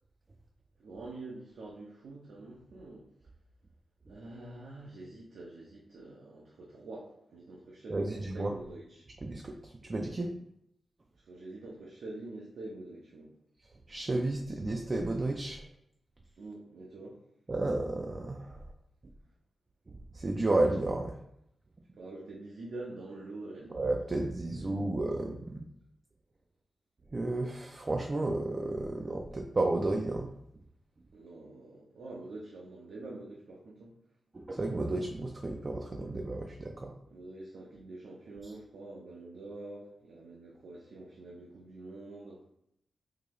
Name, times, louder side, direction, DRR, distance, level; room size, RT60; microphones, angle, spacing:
voice 1, 0.8-3.1 4.1-9.1 9.8-10.0 11.2-13.3 16.4-17.2 21.9-23.9 24.5-24.8 31.1-34.0 37.1-42.4, right 2 dB, 90° right, -3 dB, 0.6 m, -46 dB
voice 2, 7.9-8.5 9.2-10.3 13.9-15.6 17.5-18.6 20.1-21.2 23.7-25.6 27.1-30.3 34.3-36.9, right 2 dB, 30° right, 2 dB, 0.3 m, -32 dB
3.8 x 2.7 x 3.0 m, 0.77 s
wide cardioid pair, 120°, 0 cm